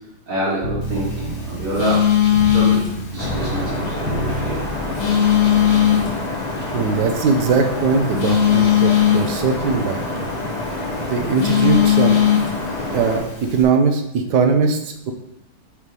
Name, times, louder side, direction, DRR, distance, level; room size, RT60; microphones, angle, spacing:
voice 1, 0.3-2.0 2.5-4.6, right 1 dB, 85° right, -8 dB, 3.6 m, -26 dB
sound 1, 0.6-6.1, right 1 dB, 35° right, 1.7 m, -30 dB
Telephone, 0.8-13.6, left 10 dB, 85° left, 2.3 m, -21 dB
sound 2, 3.2-13.2, left 2 dB, 30° left, 0.8 m, -28 dB
voice 2, 6.7-10.0 11.0-12.2 12.9-15.1, right 4 dB, 65° right, 5 dB, 1.3 m, -20 dB
8.4 x 3.2 x 5.3 m, 0.82 s
omnidirectional pair, 2.2 m